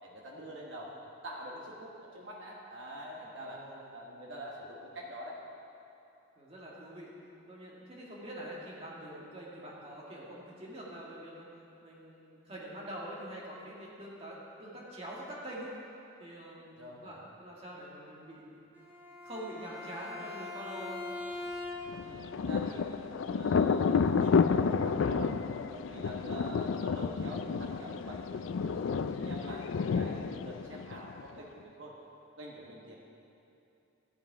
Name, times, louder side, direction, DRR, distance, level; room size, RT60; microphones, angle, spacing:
voice 1, 0.0-0.9 1.2-3.6 3.9-5.4 16.8-17.1 22.0-25.3 25.7-31.9 32.4-33.0, equal, 70° right, -3 dB, 1.3 m, -46 dB
voice 2, 3.4-3.9 6.4-7.1 7.5-11.5 11.8-15.7 16.2-18.6 19.2-21.0 25.8-26.3, right 1 dB, 30° right, -5 dB, 1.9 m, -45 dB
Bowed string instrument, 18.7-22.1, left 2 dB, 10° right, 1.0 m, -42 dB
Thunder, 21.9-31.4, left 5 dB, 70° left, 0.4 m, -30 dB
14.0 x 7.6 x 4.8 m, 2.7 s
head